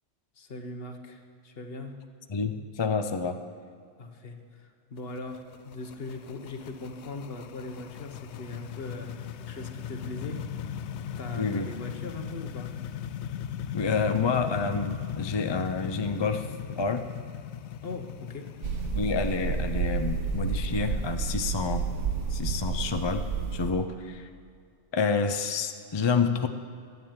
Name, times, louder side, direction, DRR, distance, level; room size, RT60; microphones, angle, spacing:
voice 1, 0.4-1.9 4.0-10.8 11.2-12.8 17.8-18.5, left 3 dB, 55° left, 5 dB, 1.3 m, -40 dB
voice 2, 2.3-3.4 11.4-11.7 13.7-17.1 18.9-21.9 22.3-23.2 23.5-24.3 24.9-26.5, left 5 dB, 35° left, 7 dB, 0.5 m, -28 dB
sound 1, 5.0-23.7, left 9 dB, 70° left, 0.8 m, -39 dB
sound 2, 18.6-23.7, right 5 dB, 75° right, 1.4 m, -30 dB
11.0 x 10.5 x 8.8 m, 2.4 s
omnidirectional pair, 1.3 m